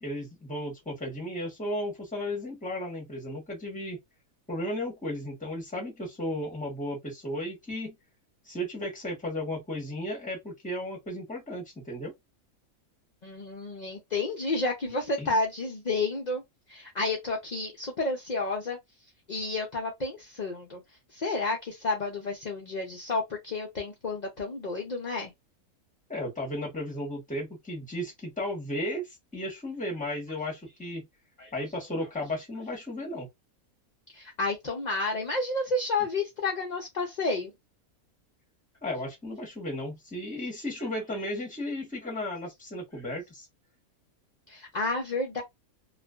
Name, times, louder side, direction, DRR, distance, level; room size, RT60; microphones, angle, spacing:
voice 1, 0.0-4.0 4.5-7.9 8.4-12.1 15.2-15.3 26.1-31.1 31.5-33.3 38.8-43.5, left 1 dB, 5° left, 0.7 m, -34 dB
voice 2, 13.2-16.4 16.7-18.8 19.3-20.8 21.1-25.3 31.4-31.5 34.1-37.5 44.5-45.4, left 3 dB, 55° left, 0.5 m, -31 dB
2.4 x 2.4 x 2.2 m
omnidirectional pair, 1.5 m